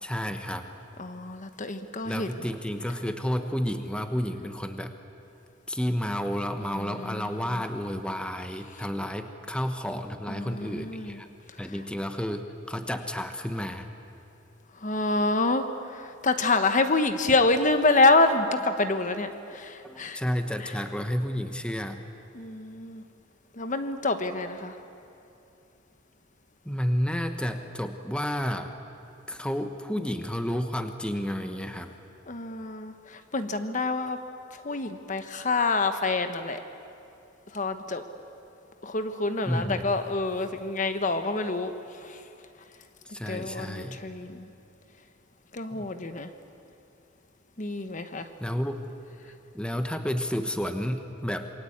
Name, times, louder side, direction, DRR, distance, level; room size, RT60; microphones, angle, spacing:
voice 1, 0.0-0.7 2.0-4.9 5.7-11.3 11.6-13.9 19.8-22.0 26.6-28.7 29.3-31.9 39.4-39.9 43.0-44.0 45.7-45.9 48.4-48.8 49.5-51.5, equal, 5° left, 7 dB, 1.1 m, -31 dB
voice 2, 1.0-2.5 6.7-7.3 10.3-11.2 14.8-15.7 16.2-20.2 22.3-23.0 23.6-24.7 32.3-32.9 33.3-34.2 34.6-36.6 37.5-38.0 38.8-41.7 43.3-44.4 45.5-46.3 47.6-48.3, left 3 dB, 40° left, 9 dB, 1.1 m, -26 dB
27.0 x 22.5 x 8.7 m, 2.7 s
head